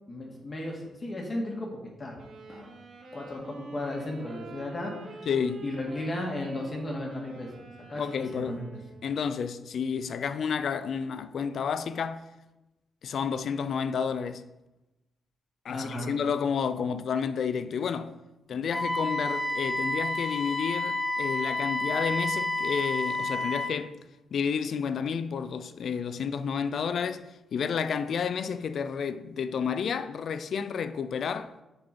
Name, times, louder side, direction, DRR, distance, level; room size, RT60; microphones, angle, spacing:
voice 1, 0.1-2.2 2.5-2.7 3.1-5.2 5.6-7.5 7.9-8.6 15.7-16.1 18.5-18.6, left 1 dB, 35° left, 2.1 m, -35 dB
Wind instrument woodwind instrument, 2.2-9.3, right 4 dB, 65° right, 1.4 m, -47 dB
voice 2, 5.3-5.6 8.0-8.6 9.0-12.3 13.0-14.4 15.6-18.2 18.5-23.9 24.3-27.3 27.5-31.5, left 6 dB, 65° left, 0.5 m, -30 dB
Wind instrument woodwind instrument 2, 18.7-23.8, left 2 dB, ahead, 0.9 m, -30 dB
7.0 x 6.1 x 5.3 m
cardioid pair, 75°, 0 cm